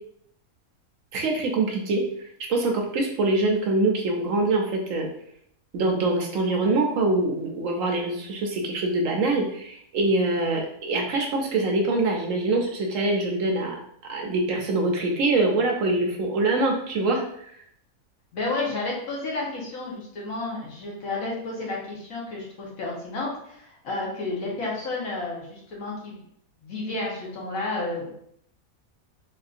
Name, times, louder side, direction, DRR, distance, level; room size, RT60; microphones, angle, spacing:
voice 1, 1.1-2.0 2.5-5.1 5.7-13.8 14.1-17.5, right 2 dB, 70° right, 1 dB, 0.9 m, -24 dB
voice 2, 18.3-26.2 26.6-28.2, left 2 dB, 70° left, -4 dB, 1.4 m, -31 dB
3.7 x 2.6 x 2.4 m, 0.70 s
omnidirectional pair, 1.5 m